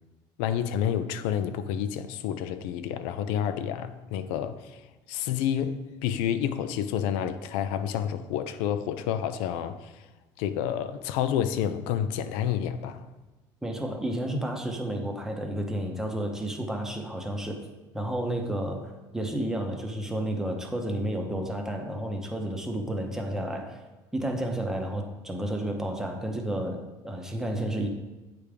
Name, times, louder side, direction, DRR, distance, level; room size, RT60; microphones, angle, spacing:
voice 1, 0.4-4.8 5.1-9.9 10.4-13.0, left 9 dB, 90° left, 0.4 m, -29 dB
voice 2, 13.6-17.6 17.9-23.8 24.1-27.9, right 1 dB, 5° right, 0.7 m, -31 dB
8.3 x 3.5 x 5.0 m
cardioid pair, 145°, 9 cm